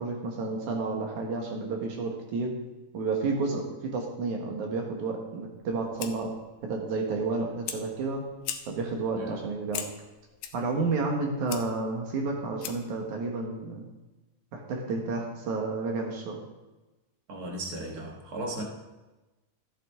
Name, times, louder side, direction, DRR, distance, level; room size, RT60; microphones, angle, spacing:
voice 1, 0.0-2.6 2.9-6.3 6.6-8.2 8.7-9.9 10.5-13.9 14.5-16.4, right 3 dB, 65° right, 1 dB, 2.7 m, -31 dB
Fire, 5.5-13.0, left 9 dB, 75° left, 2.2 m, -42 dB
voice 2, 17.3-18.6, right 1 dB, 45° right, 0 dB, 1.3 m, -36 dB
13.5 x 8.7 x 3.7 m, 1.1 s
omnidirectional pair, 3.8 m